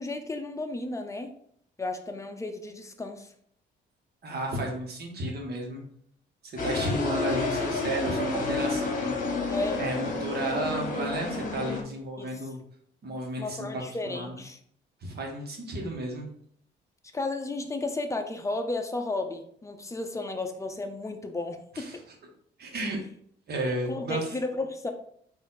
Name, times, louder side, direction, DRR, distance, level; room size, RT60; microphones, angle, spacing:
voice 1, 0.0-1.3 1.8-3.3 9.5-9.8 12.2-12.4 13.4-14.6 17.1-22.0 23.9-24.9, left 2 dB, 15° left, 5 dB, 0.6 m, -33 dB
voice 2, 4.2-5.8 6.4-9.2 9.8-12.6 13.0-14.4 15.0-16.3 21.7-22.0 22.6-23.0 23.5-24.4, right 1 dB, 55° right, 1 dB, 1.3 m, -33 dB
sound 1, 6.6-11.8, left 3 dB, 45° left, 1.1 m, -30 dB
4.2 x 2.7 x 4.0 m, 0.65 s
cardioid pair, 90°, 20 cm